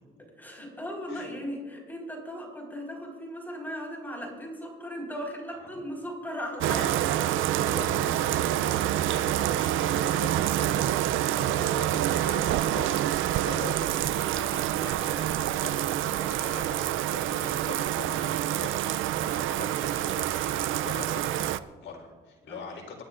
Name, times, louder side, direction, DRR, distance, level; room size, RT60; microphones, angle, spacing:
voice 1, 0.4-7.0 9.5-9.6 22.5-22.6, equal, 10° left, -1 dB, 4.6 m, -37 dB
voice 2, 6.6-23.0, left 4 dB, 70° left, 1 dB, 4.1 m, -43 dB
Bathtub (filling or washing), 6.6-21.6, right 12 dB, 80° right, 0.5 m, -27 dB
26.0 x 12.0 x 2.6 m, 1.5 s
cardioid pair, 90°, 20 cm